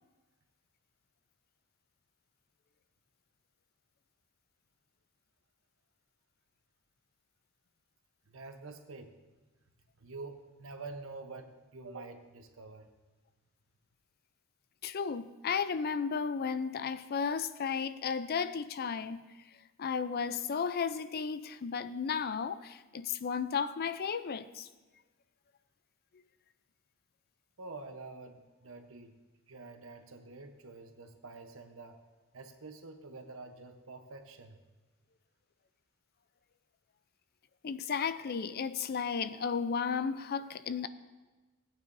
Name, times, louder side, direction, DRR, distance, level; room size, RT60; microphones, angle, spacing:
voice 1, 8.3-9.2 10.0-12.9 27.6-29.1 29.5-32.0 32.3-34.6, right 3 dB, 70° right, 6 dB, 0.9 m, -47 dB
voice 2, 14.8-19.3 19.8-24.7 37.6-40.9, left 6 dB, 50° left, 13 dB, 0.4 m, -34 dB
16.0 x 9.0 x 2.7 m, 1.2 s
head